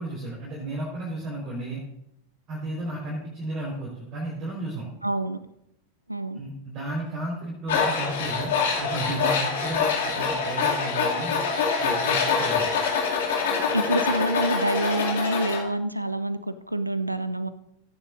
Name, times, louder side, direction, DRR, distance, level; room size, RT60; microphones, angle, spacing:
voice 1, 0.0-1.8 2.5-4.9 6.3-11.4 11.8-12.7, right 2 dB, 30° right, -5 dB, 4.5 m, -33 dB
voice 2, 5.0-5.4 6.1-6.4 13.7-17.5, right 1 dB, 85° right, 14 dB, 0.6 m, -27 dB
Tools, 7.7-15.6, left 5 dB, 60° left, 2.6 m, -25 dB
17.0 x 9.9 x 2.6 m, 0.80 s
figure-of-eight pair, 90°, 0 cm